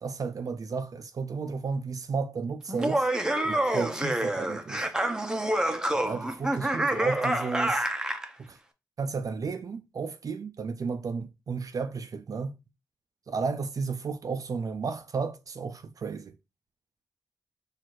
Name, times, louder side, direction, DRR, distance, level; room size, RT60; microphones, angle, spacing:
voice 1, 0.0-3.1 3.4-4.9 5.9-7.9 8.4-8.6 9.0-12.5 13.3-16.3, right 5 dB, 60° right, 0.3 m, -33 dB
Laughter, 2.7-8.3, right 1 dB, 10° right, 0.6 m, -27 dB
4.4 x 2.4 x 4.4 m
wide cardioid pair, 85°, 7 cm